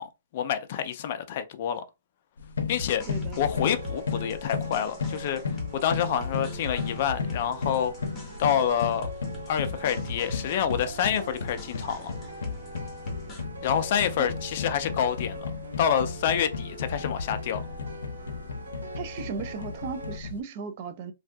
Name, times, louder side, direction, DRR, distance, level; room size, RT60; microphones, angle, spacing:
voice 1, 0.0-1.8 2.7-3.0 3.4-5.4 5.7-7.9 8.4-9.1 9.5-12.1 13.6-15.5 15.8-17.6, left 9 dB, 40° left, 0.4 m, -27 dB
sound 1, 2.4-20.4, left 5 dB, 85° left, 0.6 m, -35 dB
sound 2, 2.8-13.4, left 4 dB, 15° left, 0.9 m, -40 dB
voice 2, 3.1-3.5 14.2-14.3 19.0-21.1, right 5 dB, 35° right, 0.4 m, -36 dB
sound 3, 3.5-20.2, right 2 dB, 80° right, 1.1 m, -43 dB
2.6 x 2.4 x 3.3 m
hypercardioid pair, 165°, 0 cm